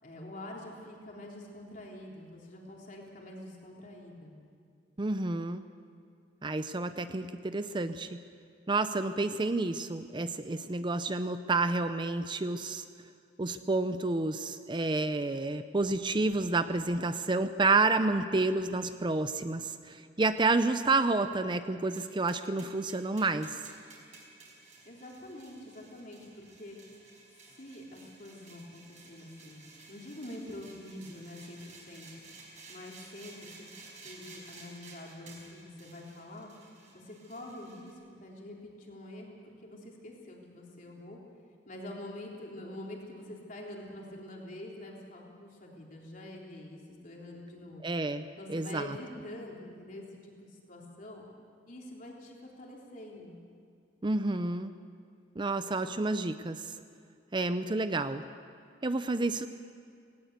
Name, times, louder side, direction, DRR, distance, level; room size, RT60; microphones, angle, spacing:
voice 1, 0.0-4.3 24.9-26.8 27.5-29.6 29.9-32.2 32.7-33.7 34.0-36.5 36.9-41.2 41.7-47.9 48.4-51.2 51.7-53.4, left 1 dB, 50° left, -2 dB, 3.6 m, -46 dB
voice 2, 5.0-5.6 6.4-8.2 8.7-12.8 13.4-23.6 47.8-49.0 54.0-54.7 55.4-56.7 57.3-58.2 58.8-59.5, right 3 dB, 25° right, 11 dB, 0.6 m, -30 dB
sound 1, 22.0-37.9, right 3 dB, 45° right, 5.0 m, -54 dB
18.5 x 18.5 x 8.1 m, 2.3 s
head